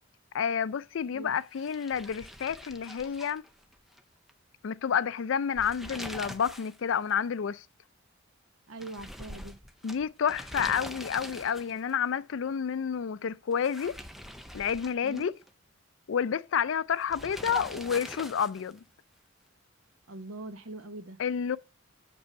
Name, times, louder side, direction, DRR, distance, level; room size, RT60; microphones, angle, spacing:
voice 1, 0.3-3.4 4.6-7.6 9.8-13.9 14.5-15.3 16.1-18.8 21.2-21.6, left 7 dB, 65° left, 0.4 m, -30 dB
sound 1, 1.5-4.0 4.3-4.4 5.4-6.8 7.1-7.2 8.8-11.9 13.5-15.5 17.1-18.8, equal, ahead, 0.5 m, -43 dB
voice 2, 8.7-9.6 15.0-15.3 20.1-21.2, right 2 dB, 80° right, 1.0 m, -42 dB
7.0 x 5.3 x 6.4 m
head